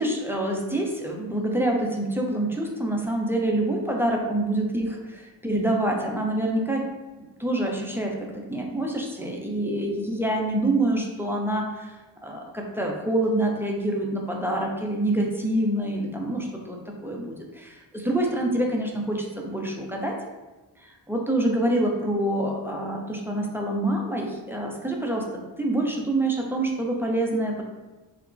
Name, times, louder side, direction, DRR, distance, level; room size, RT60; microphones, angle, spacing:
voice 1, 0.0-6.9 7.4-12.0 12.2-16.8 17.0-20.2 20.8-25.3 25.6-27.6, right 1 dB, 5° right, 0 dB, 0.4 m, -26 dB
3.7 x 2.1 x 2.5 m, 1.1 s
cardioid pair, 50°, 50 cm